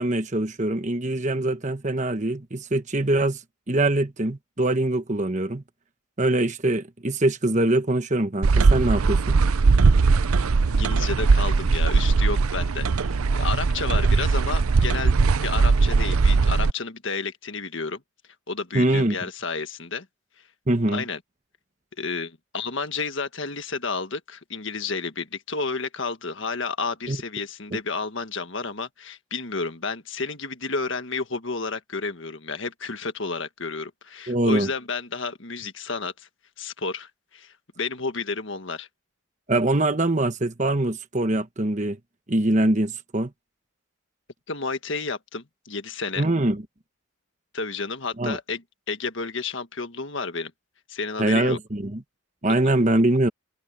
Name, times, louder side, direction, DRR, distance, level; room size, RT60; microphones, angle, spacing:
voice 1, 0.0-3.4 3.7-5.6 6.2-9.4 18.7-19.2 20.7-21.0 27.1-27.2 34.3-34.7 39.5-42.0 42.3-43.3 46.2-46.6 48.2-48.4 51.2-52.0 52.4-53.3, right 1 dB, 35° right, 1.2 m, -23 dB
sound 1, 8.4-16.7, right 4 dB, 85° right, 0.6 m, -20 dB
voice 2, 10.6-15.1 15.4-18.0 18.5-20.1 20.9-21.2 22.0-36.3 36.6-38.9 44.5-46.2 47.5-50.5 50.9-51.6, left 4 dB, 60° left, 1.6 m, -31 dB
open air
head